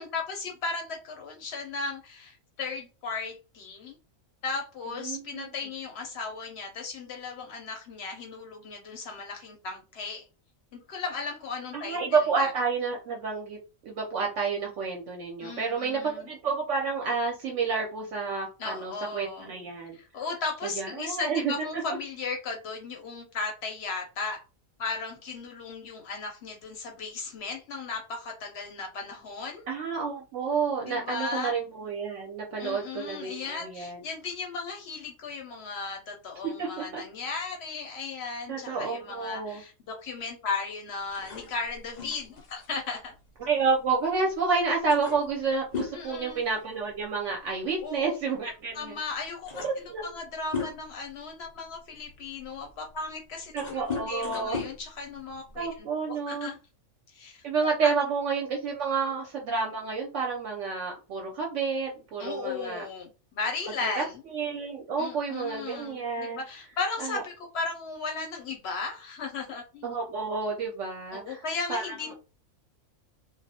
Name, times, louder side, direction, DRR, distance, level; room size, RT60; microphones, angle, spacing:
voice 1, 0.0-4.0 4.4-10.2 10.7-12.5 15.4-16.3 18.6-19.5 19.9-24.4 24.8-29.7 30.8-31.5 32.6-43.1 45.9-46.4 47.8-48.2 48.7-53.7 54.1-56.6 57.1-57.4 57.8-57.9 62.2-64.2 65.0-69.9 71.1-72.1, left 4 dB, 60° left, 3 dB, 0.7 m, -36 dB
voice 2, 4.9-5.5 11.7-13.6 13.9-20.0 20.6-21.5 29.7-34.0 36.6-37.0 38.5-39.6 43.4-49.0 49.6-50.0 53.5-54.6 55.6-56.5 57.4-62.8 64.0-64.1 64.3-66.4 67.0-67.2 69.8-71.4 71.7-72.1, right 5 dB, 70° right, 0 dB, 0.8 m, -30 dB
sound 1, 41.1-44.2 44.5-44.6 44.9-47.1 47.3-47.6 48.6-48.7 49.1-51.1 51.7-55.8, left 5 dB, 80° left, 0.3 m, -38 dB
2.3 x 2.0 x 2.7 m, 0.33 s
omnidirectional pair, 1.4 m